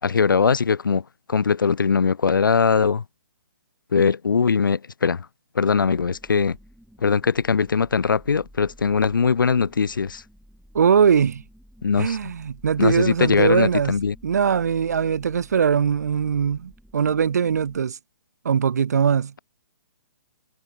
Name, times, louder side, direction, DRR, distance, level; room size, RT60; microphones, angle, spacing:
voice 1, 0.0-1.0 1.3-3.0 3.9-5.3 5.6-6.6 7.0-10.2 11.8-12.3 12.8-14.1, left 5 dB, 85° left, 5.6 m, -21 dB
sound 1, 5.7-17.8, equal, ahead, 7.2 m, -50 dB
voice 2, 10.7-11.4 12.0-14.0 14.2-18.0 18.4-19.3, right 7 dB, 55° right, 1.3 m, -21 dB
hypercardioid pair, 175°, 11 cm